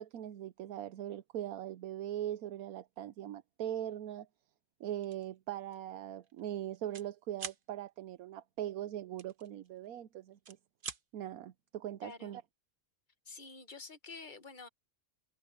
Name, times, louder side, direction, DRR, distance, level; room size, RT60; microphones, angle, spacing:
voice 1, 0.0-4.3 4.8-10.6 11.1-12.4, right 11 dB, 85° right, 1.2 m, -41 dB
sound 1, 5.0-5.3 5.7-5.9 6.2-7.1 7.3-7.6 9.2-10.0 10.3-11.0, right 5 dB, 40° right, 1.1 m, -45 dB
voice 2, 12.0-12.4 13.2-14.7, left 4 dB, 35° left, 1.2 m, -48 dB
omnidirectional pair, 1.5 m